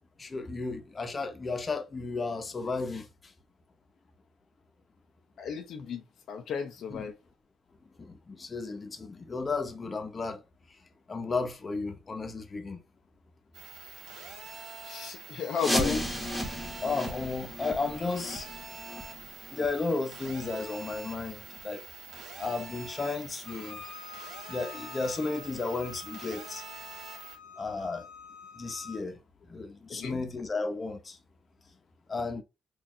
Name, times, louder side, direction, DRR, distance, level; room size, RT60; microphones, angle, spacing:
voice 1, 0.2-3.1 6.9-7.0 8.0-10.4 11.1-12.8 15.7-16.0 16.8-18.6 19.5-21.8 22.4-23.8 24.5-26.6 27.6-28.1 28.6-29.2 29.5-31.2 32.1-32.4, left 3 dB, 30° left, 0.8 m, -33 dB
voice 2, 5.4-7.2 14.8-16.0 29.9-30.3, left 6 dB, 70° left, 0.6 m, -34 dB
sound 1, 13.5-27.4, right 4 dB, 80° right, 1.5 m, -46 dB
sound 2, 15.5-21.1 21.5-21.6 22.1-22.2 22.8-22.9 23.5-23.6, equal, 5° left, 1.2 m, -36 dB
Bowed string instrument, 23.4-29.0, left 6 dB, 85° left, 1.3 m, -47 dB
4.2 x 2.6 x 2.6 m
cardioid pair, 90°, 0 cm